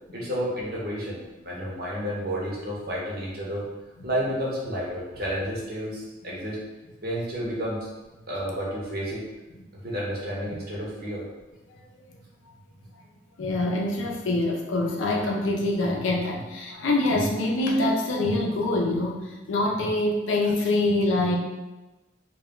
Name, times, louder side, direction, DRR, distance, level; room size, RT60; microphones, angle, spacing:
voice 1, 0.1-3.7 4.0-6.6 7.0-7.9 8.3-9.2 9.8-11.2, equal, 50° right, -5 dB, 0.7 m, -31 dB
voice 2, 13.4-21.4, left 2 dB, 85° left, 0 dB, 0.5 m, -25 dB
2.3 x 2.1 x 3.6 m, 1.1 s
head